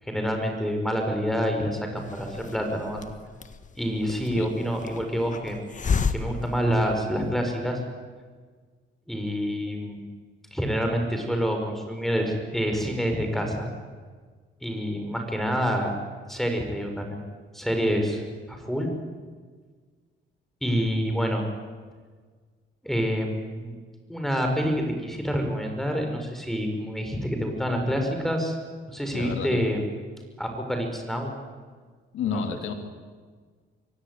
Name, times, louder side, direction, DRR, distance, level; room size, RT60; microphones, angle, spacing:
voice 1, 0.0-3.0 3.8-5.6 6.1-7.8 9.1-10.1 10.5-13.7 14.6-15.9 16.3-17.2 17.5-18.9 20.6-21.5 22.8-23.7 24.1-28.6 28.9-29.8 30.4-31.3 32.3-32.4, equal, ahead, 4 dB, 5.6 m, -27 dB
Hiss, 2.0-7.5, left 5 dB, 40° left, 1.6 m, -33 dB
voice 2, 29.1-29.6 32.1-32.7, left 6 dB, 80° left, 6 dB, 2.9 m, -30 dB
24.0 x 17.0 x 9.3 m, 1.5 s
cardioid pair, 90°, 20 cm